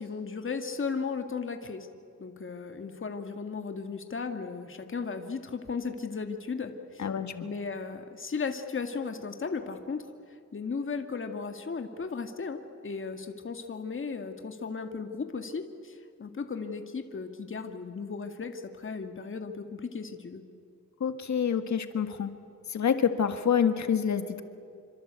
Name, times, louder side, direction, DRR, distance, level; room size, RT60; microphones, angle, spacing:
voice 1, 0.0-1.9 2.2-7.1 7.4-20.4, left 5 dB, 45° left, 6 dB, 2.1 m, -36 dB
voice 2, 7.0-7.5 21.0-22.3 22.7-24.4, left 7 dB, 70° left, 8 dB, 1.8 m, -27 dB
27.5 x 25.5 x 8.3 m, 2.4 s
cardioid pair, 95°, 30 cm